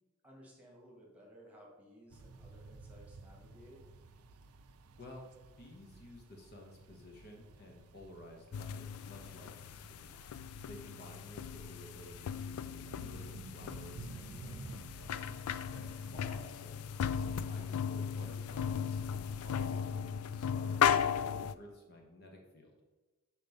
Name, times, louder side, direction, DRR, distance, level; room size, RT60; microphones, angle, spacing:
voice 1, 0.2-3.8 15.7-16.0, equal, 5° right, -3 dB, 1.5 m, -57 dB
sound 1, 2.1-16.6, right 3 dB, 85° right, 0.5 m, -53 dB
voice 2, 5.0-10.1 10.7-15.2 16.0-22.7, left 1 dB, 45° left, 1 dB, 0.9 m, -54 dB
sound 2, 8.5-21.5, left 8 dB, 85° left, 0.3 m, -36 dB
5.2 x 4.6 x 5.3 m, 1.2 s
head